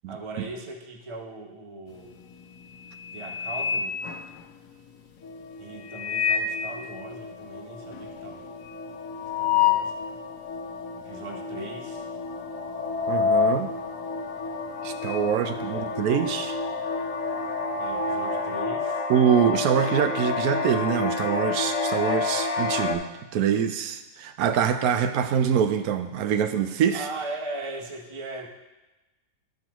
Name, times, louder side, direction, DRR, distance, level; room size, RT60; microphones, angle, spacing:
voice 1, 0.1-2.2 3.1-4.0 5.6-8.5 9.4-10.2 11.0-12.0 15.3-16.0 17.8-19.0 26.9-28.5, right 2 dB, 30° right, 1 dB, 0.5 m, -39 dB
sound 1, 2.0-2.3 2.7-4.8 5.8-6.7 7.1-7.2 7.4-7.5 7.9-10.1 10.5-10.6 11.4-11.8 12.0-15.3 15.6-18.6, left 6 dB, 80° left, 1.3 m, -28 dB
sound 2, 5.2-23.0, left 4 dB, 60° left, 1.1 m, -31 dB
voice 2, 13.1-13.7 14.8-16.5 19.1-23.0 23.3-27.1, right 8 dB, 70° right, 9 dB, 1.0 m, -24 dB
13.5 x 5.4 x 3.0 m, 1.1 s
omnidirectional pair, 1.8 m